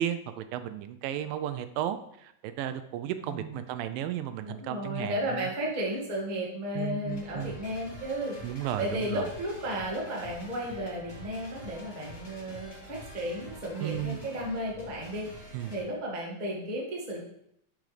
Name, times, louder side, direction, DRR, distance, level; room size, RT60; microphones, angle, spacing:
voice 1, 0.0-5.5 6.8-7.6 8.4-9.3 13.8-14.2 15.5-15.7, right 11 dB, 85° right, 10 dB, 2.2 m, -34 dB
voice 2, 3.2-3.6 4.4-17.2, equal, 35° right, -2 dB, 0.7 m, -34 dB
sound 1, 7.1-15.8, left 1 dB, 30° left, 3.3 m, -47 dB
10.5 x 6.2 x 3.3 m, 0.74 s
omnidirectional pair, 4.1 m